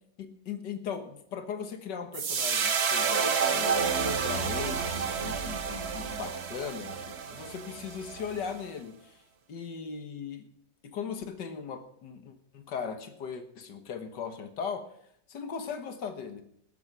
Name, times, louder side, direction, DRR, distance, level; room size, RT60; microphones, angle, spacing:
voice 1, 0.2-9.2 9.5-10.5 10.8-14.9 15.3-16.4, left 6 dB, 75° left, 8 dB, 2.0 m, -38 dB
sound 1, 2.1-8.5, right 6 dB, 45° right, 1.1 m, -30 dB
18.5 x 8.0 x 6.1 m, 0.70 s
omnidirectional pair, 1.9 m